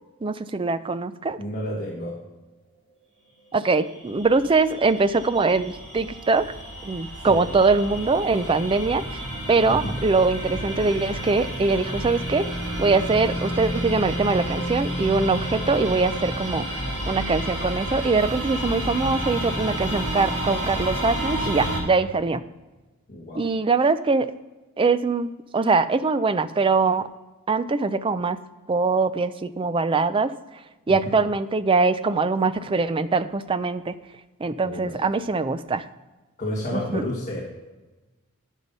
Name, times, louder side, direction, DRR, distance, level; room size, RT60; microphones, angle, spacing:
voice 1, 0.2-1.4 3.5-6.5 6.9-9.2 9.5-12.4 12.8-16.6 17.1-22.4 23.4-24.3 24.8-27.1 27.5-28.4 28.7-30.3 30.9-33.9 34.4-35.8 36.7-37.0, right 4 dB, 25° right, 13 dB, 0.4 m, -22 dB
voice 2, 1.4-2.2 7.1-7.5 9.7-10.0 23.1-23.5 30.9-31.2 34.6-35.0 36.4-37.5, left 1 dB, 35° left, -4 dB, 1.5 m, -31 dB
sound 1, 4.0-21.8, right 1 dB, 90° right, 3.7 m, -30 dB
11.5 x 5.5 x 5.4 m, 1.2 s
head